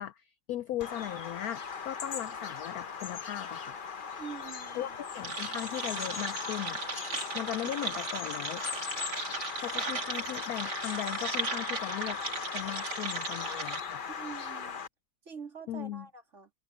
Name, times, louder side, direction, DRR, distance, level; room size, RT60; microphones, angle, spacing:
voice 1, 0.0-3.8 4.8-6.8 7.3-8.6 9.6-12.2 12.5-14.0 15.7-16.1, left 12 dB, 80° left, 0.8 m, -38 dB
Bird vocalization bird call bird song, 0.8-14.9, left 6 dB, 45° left, 0.7 m, -39 dB
voice 2, 4.2-5.0 14.2-14.8 15.2-16.5, right 6 dB, 35° right, 2.7 m, -45 dB
sound 1, 5.2-13.8, right 4 dB, 55° right, 3.4 m, -37 dB
omnidirectional pair, 2.1 m